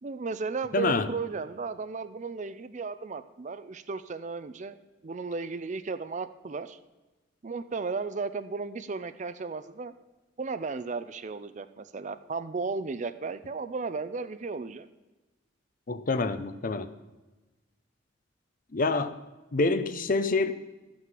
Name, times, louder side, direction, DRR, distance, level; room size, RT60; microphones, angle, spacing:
voice 1, 0.0-4.8 5.0-6.8 7.4-9.9 10.4-14.9, right 4 dB, 40° right, 12 dB, 0.5 m, -35 dB
voice 2, 0.7-1.1 15.9-16.9 18.7-19.2 19.5-20.5, left 3 dB, 45° left, 11 dB, 0.6 m, -26 dB
13.0 x 6.2 x 7.5 m, 1.2 s
head